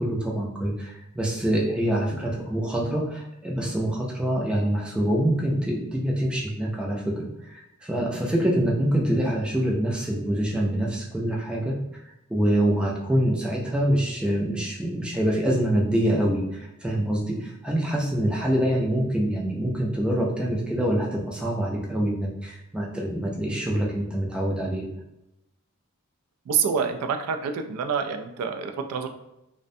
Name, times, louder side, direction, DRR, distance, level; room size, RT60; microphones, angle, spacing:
voice 1, 0.0-11.8 12.3-24.9, right 1 dB, 5° right, -3 dB, 0.3 m, -25 dB
voice 2, 26.5-29.1, right 6 dB, 85° right, 10 dB, 0.3 m, -27 dB
2.5 x 2.1 x 2.5 m, 0.87 s
head